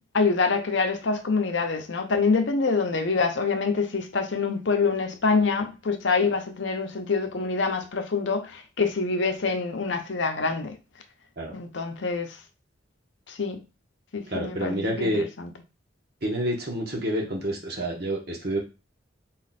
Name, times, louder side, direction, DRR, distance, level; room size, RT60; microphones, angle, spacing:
voice 1, 0.1-10.8 11.5-12.3 13.3-13.6 14.1-15.5, left 4 dB, 65° left, 0.7 m, -26 dB
voice 2, 14.3-15.3 16.2-18.6, right 1 dB, 50° right, 1.2 m, -28 dB
4.0 x 2.5 x 4.1 m
head